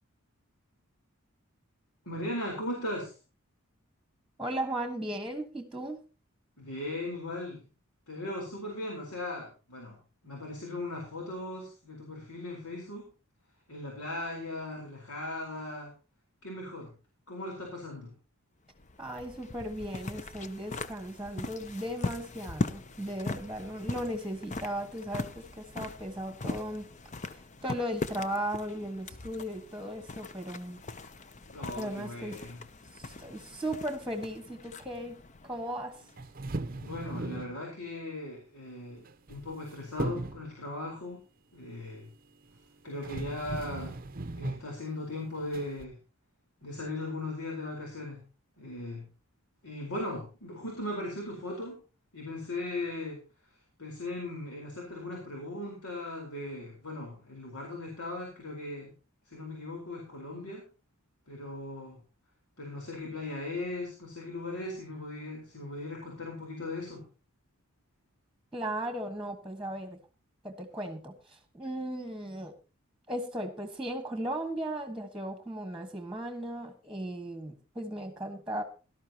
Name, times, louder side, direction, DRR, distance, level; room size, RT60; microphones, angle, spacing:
voice 1, 2.1-3.1 6.6-7.7 8.1-10.0 10.2-13.1 13.7-15.9 16.4-16.9 17.3-18.1 31.5-32.6 36.7-41.2 41.5-42.1 42.8-43.9 44.4-46.0 46.6-48.2 48.6-49.1 49.6-51.8 52.1-53.2 53.8-58.9 59.3-60.7 61.3-62.0 62.6-67.0, left 2 dB, 80° left, 0 dB, 4.4 m, -38 dB
voice 2, 4.4-6.0 19.0-26.9 27.3-30.8 31.8-32.4 32.9-36.0 68.5-70.0 70.4-72.5 73.1-78.6, right 1 dB, 5° right, 6 dB, 1.6 m, -36 dB
sound 1, 18.7-36.4, left 2 dB, 30° left, 0.7 m, -40 dB
sound 2, 36.2-37.6 39.1-39.7 40.0-40.5 42.5-42.6 43.0-44.7 45.5-45.9, right 2 dB, 40° right, 0.7 m, -37 dB
17.5 x 12.5 x 2.9 m, 0.32 s
head